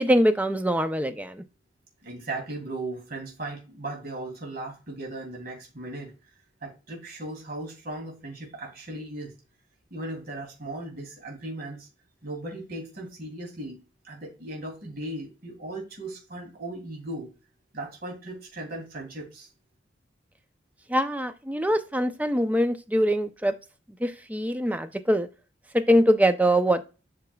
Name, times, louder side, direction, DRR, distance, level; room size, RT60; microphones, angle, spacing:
voice 1, 0.0-1.4 20.9-23.5 24.0-25.3 25.7-26.8, equal, 10° right, 9 dB, 0.5 m, -23 dB
voice 2, 2.0-6.1 6.6-9.3 9.9-11.9 12.2-17.3 17.7-19.5, right 2 dB, 50° right, 0 dB, 2.8 m, -37 dB
8.2 x 5.9 x 2.3 m, 0.32 s
head